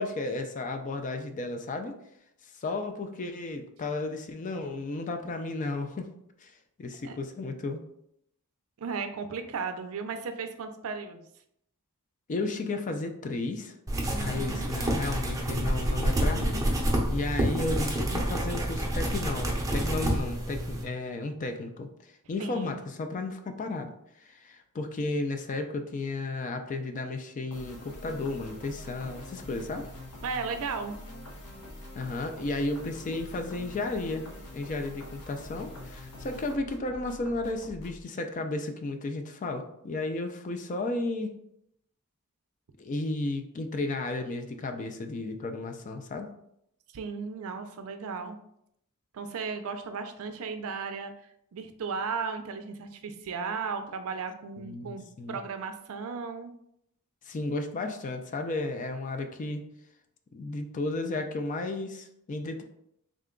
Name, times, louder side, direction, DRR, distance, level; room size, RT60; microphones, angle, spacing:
voice 1, 0.0-2.0 2.6-6.1 6.4-6.5 6.8-7.8 12.3-13.7 14.2-16.6 17.1-21.9 22.3-23.9 24.2-29.9 32.0-41.4 42.8-46.3 54.6-55.4 57.3-59.6 60.3-62.6, left 2 dB, 35° left, 6 dB, 0.3 m, -33 dB
voice 2, 8.8-11.3 14.1-14.7 22.4-22.8 30.2-31.0 46.9-48.4 49.1-55.0 55.3-56.5, right 5 dB, 65° right, 7 dB, 0.4 m, -35 dB
sound 1, 13.9-20.8, right 1 dB, 15° right, 0.6 m, -28 dB
sound 2, 27.5-38.0, left 1 dB, 85° left, 0.7 m, -45 dB
3.7 x 2.2 x 3.7 m, 0.75 s
head